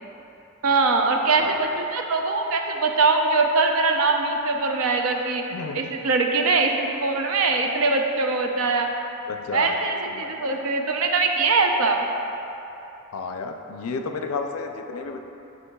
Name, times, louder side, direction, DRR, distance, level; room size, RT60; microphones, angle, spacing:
voice 1, 0.6-5.4 5.7-8.9 9.5-12.1, right 3 dB, 75° right, 3 dB, 0.5 m, -22 dB
voice 2, 5.5-5.9 9.3-10.5 13.1-15.2, left 4 dB, 80° left, 5 dB, 0.4 m, -32 dB
8.4 x 5.0 x 2.2 m, 2.9 s
head